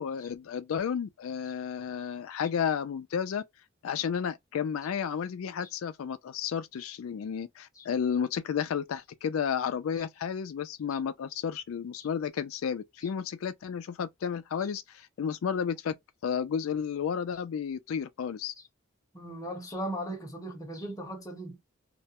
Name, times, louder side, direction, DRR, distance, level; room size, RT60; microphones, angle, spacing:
voice 1, 0.0-3.4 3.8-15.9 16.2-18.5, left 7 dB, 90° left, 0.4 m, -32 dB
voice 2, 19.1-21.6, right 1 dB, 15° left, 0.8 m, -38 dB
2.4 x 2.2 x 2.8 m
head